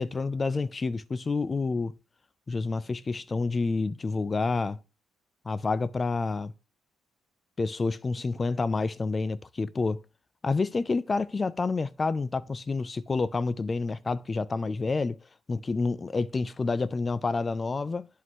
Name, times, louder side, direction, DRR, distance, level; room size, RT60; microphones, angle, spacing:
voice 1, 0.0-1.9 2.5-4.8 5.5-6.5 7.6-10.0 10.4-15.2 15.5-18.1, left 3 dB, 30° left, 0.4 m, -28 dB
11.0 x 3.8 x 3.1 m
cardioid pair, 90°, 0 cm